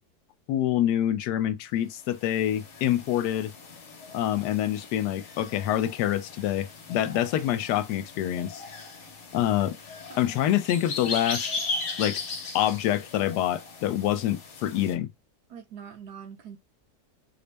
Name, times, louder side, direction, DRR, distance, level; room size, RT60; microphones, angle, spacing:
voice 1, 0.5-3.5 4.1-8.6 9.3-9.7 10.2-11.5 12.0-12.2 12.5-15.1, left 12 dB, 80° left, 1.1 m, -26 dB
sound 1, 2.0-14.9, left 4 dB, 50° left, 1.1 m, -38 dB
voice 2, 9.0-9.3 9.6-9.7 10.1-10.2 10.7-11.0 15.5-16.6, right 7 dB, 70° right, 1.3 m, -45 dB
4.2 x 2.0 x 3.3 m
omnidirectional pair, 1.8 m